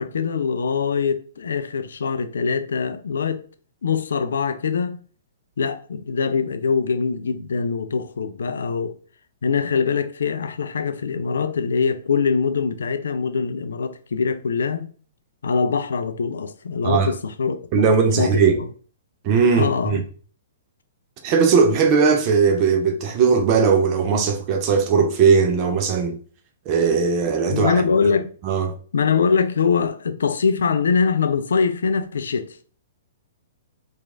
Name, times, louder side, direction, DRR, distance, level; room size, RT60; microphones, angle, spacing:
voice 1, 0.0-3.5 3.8-5.0 5.6-8.9 9.4-14.9 15.4-18.7 19.6-20.0 27.5-28.3 28.9-32.6, left 5 dB, 70° left, 0.3 m, -23 dB
voice 2, 17.7-18.6 19.2-20.0 21.2-26.2 26.7-27.7 28.4-28.7, right 5 dB, 35° right, 0.5 m, -18 dB
3.0 x 2.3 x 2.5 m
figure-of-eight pair, 115°, 0 cm